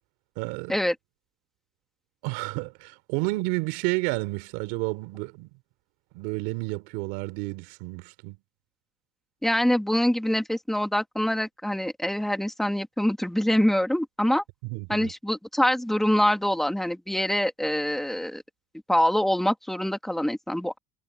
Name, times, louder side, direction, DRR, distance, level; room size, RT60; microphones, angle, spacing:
voice 1, 0.4-0.8 2.2-5.5 6.1-8.4 14.6-15.1, right 25 dB, 75° right, 4.7 m, -31 dB
voice 2, 9.4-14.4 14.9-18.4 18.9-20.8, equal, ahead, 2.2 m, -25 dB
supercardioid pair, 125°, 16 cm